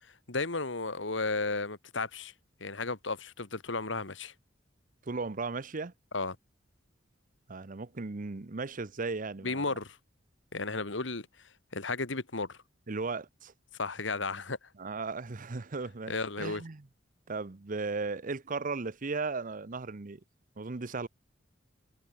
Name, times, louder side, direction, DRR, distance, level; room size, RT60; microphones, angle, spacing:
voice 1, 0.3-2.3 2.6-4.3 6.1-6.4 9.4-10.0 10.5-11.3 11.7-12.6 13.8-14.6 16.1-16.6, left 3 dB, 75° left, 2.1 m, -33 dB
voice 2, 5.1-5.9 7.5-9.8 12.9-13.5 14.8-16.9 17.3-20.2 20.6-21.1, right 4 dB, 45° right, 0.8 m, -36 dB
head